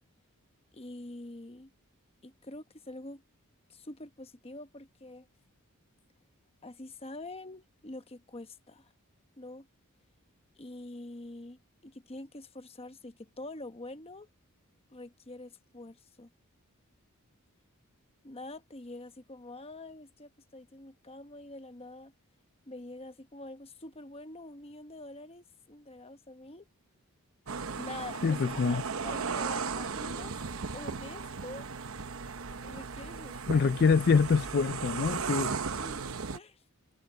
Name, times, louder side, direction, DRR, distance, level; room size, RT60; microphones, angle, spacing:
voice 1, 0.7-1.7 2.2-3.2 3.7-5.3 6.6-8.9 9.4-9.7 10.6-14.3 14.9-16.3 18.2-22.1 22.7-26.6 27.7-30.3 30.7-31.7 32.6-33.7 35.7-36.0 36.3-36.6, left 2 dB, 25° left, 1.0 m, -45 dB
sound 1, 27.5-36.4, right 5 dB, 65° right, 0.9 m, -36 dB
voice 2, 28.2-28.8 33.5-35.6, left 5 dB, 45° left, 0.4 m, -25 dB
head